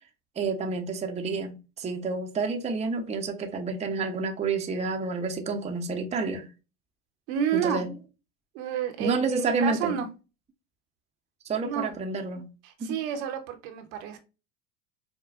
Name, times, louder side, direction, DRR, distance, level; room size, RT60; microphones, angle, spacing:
voice 1, 0.4-6.5 7.5-8.0 9.0-10.1 11.5-12.5 12.8-13.0, right 4 dB, 15° right, 0.6 m, -29 dB
voice 2, 7.3-7.8 8.5-10.1 11.6-11.9 12.6-14.2, right 9 dB, 65° right, 0.8 m, -30 dB
4.8 x 2.2 x 2.4 m
hypercardioid pair, 85°, 38 cm